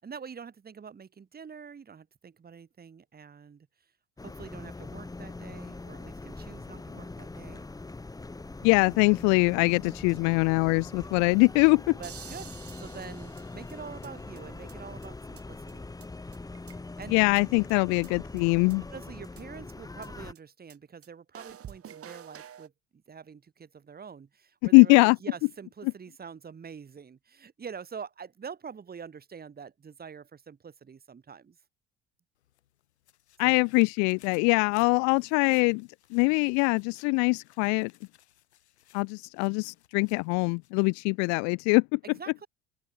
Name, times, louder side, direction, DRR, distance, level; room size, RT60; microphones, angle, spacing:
voice 1, 0.0-3.7 4.2-7.7 12.0-15.9 17.0-17.2 18.9-22.7 23.1-31.6 33.4-33.6 42.0-42.5, right 6 dB, 30° right, 2.5 m, -45 dB
sound 1, 4.2-20.3, left 3 dB, 10° left, 1.2 m, -42 dB
voice 2, 8.6-12.0 17.1-18.8 24.7-25.2 33.4-37.9 38.9-42.0, left 35 dB, 60° left, 0.4 m, -23 dB
sound 2, 12.0-14.1 14.4-14.5 14.7-14.8 15.0-15.1 15.4-15.5 15.7-15.8 16.0-16.1 16.3-17.1 17.4-17.5 17.7-17.8 18.0-18.1 18.4-18.5 18.7-18.8 19.0-19.1 19.4-19.5 19.7-19.8 20.0-20.1 20.4-20.5 20.7-20.8 21.0-21.1 21.3-22.7, right 9 dB, 45° right, 7.9 m, -48 dB
sound 3, 32.3-41.1 41.5-41.6, left 12 dB, 85° left, 4.5 m, -62 dB
open air
hypercardioid pair, 65°, 32 cm